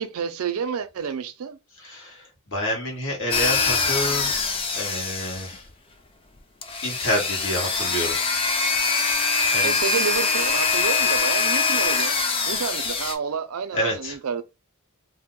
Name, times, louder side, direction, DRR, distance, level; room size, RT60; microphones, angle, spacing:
voice 1, 0.0-1.6 9.6-12.2 12.4-14.4, right 6 dB, 70° right, 0.4 m, -29 dB
voice 2, 1.8-4.3 4.7-5.6 6.8-8.1 9.5-9.8 11.3-11.4 13.7-14.2, equal, 60° left, 1.3 m, -28 dB
sound 1, 3.3-5.7 6.6-13.2, left 4 dB, 25° left, 0.4 m, -23 dB
2.7 x 2.1 x 3.6 m
head